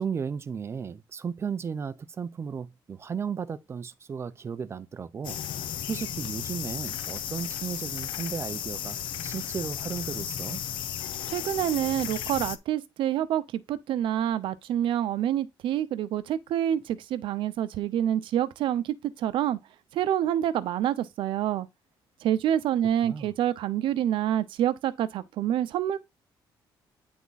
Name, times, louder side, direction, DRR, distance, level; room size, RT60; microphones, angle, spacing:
voice 1, 0.0-5.4 5.9-9.0 9.2-10.6 23.0-23.3, right 6 dB, 30° right, 0.6 m, -34 dB
sound 1, 5.2-12.6, left 10 dB, 70° left, 0.6 m, -34 dB
voice 2, 11.3-13.4 13.7-18.8 19.2-19.6 19.9-21.7 22.2-26.0, right 11 dB, 75° right, 0.7 m, -27 dB
9.4 x 3.6 x 4.0 m
cardioid pair, 150°, 9 cm